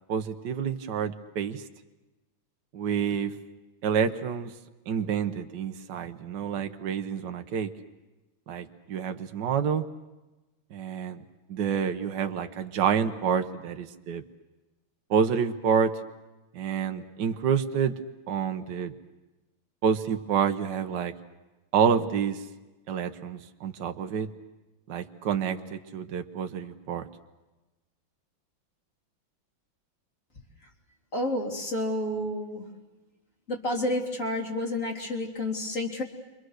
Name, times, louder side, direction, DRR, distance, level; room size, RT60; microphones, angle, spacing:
voice 1, 0.1-1.6 2.7-3.3 3.8-4.5 4.9-7.7 8.5-9.8 10.7-11.2 11.5-14.2 15.1-15.9 16.5-18.0 18.3-18.9 19.8-21.1 21.7-22.4 22.9-24.3 24.9-27.1, right 7 dB, 60° right, 6 dB, 1.6 m, -28 dB
voice 2, 31.1-32.7 33.5-36.0, left 1 dB, 40° left, 0 dB, 3.7 m, -30 dB
29.5 x 25.0 x 6.5 m, 1.1 s
omnidirectional pair, 2.2 m